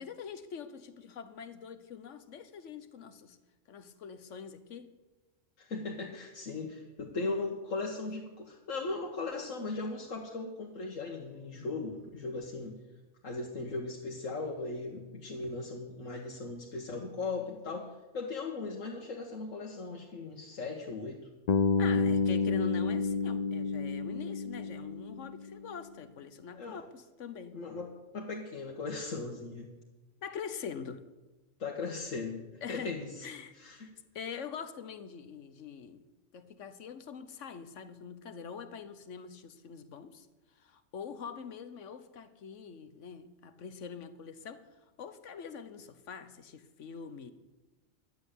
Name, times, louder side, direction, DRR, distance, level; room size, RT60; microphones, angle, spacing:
voice 1, 0.0-3.4 3.7-4.9 21.8-27.5 30.2-31.0 32.6-33.0 33.2-33.5 33.8-33.9 34.1-36.0 36.3-40.3 40.5-44.7 45.0-47.3, left 6 dB, 70° left, 12 dB, 1.3 m, -44 dB
voice 2, 5.6-12.8 13.2-21.2 21.9-22.0 26.5-26.8 27.5-29.7 31.6-33.3 33.6-33.9, left 3 dB, 90° left, -1 dB, 1.8 m, -38 dB
Bass guitar, 21.5-25.6, left 4 dB, 55° left, 0.4 m, -30 dB
11.5 x 8.9 x 9.9 m, 1.2 s
omnidirectional pair, 1.3 m